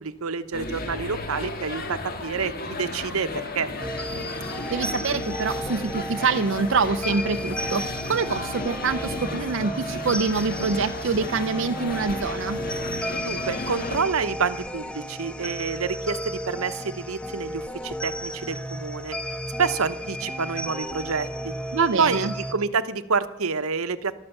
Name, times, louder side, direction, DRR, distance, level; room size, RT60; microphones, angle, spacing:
voice 1, 0.0-3.7 13.2-19.1 19.6-21.5 22.0-24.1, right 5 dB, 90° right, 12 dB, 0.9 m, -28 dB
sound 1, 0.5-14.0, left 2 dB, 45° left, 1.7 m, -34 dB
sound 2, 3.8-22.5, equal, 5° left, 0.6 m, -34 dB
voice 2, 4.4-12.6 21.7-22.3, right 4 dB, 60° right, 8 dB, 0.5 m, -25 dB
14.0 x 12.5 x 7.1 m, 0.92 s
head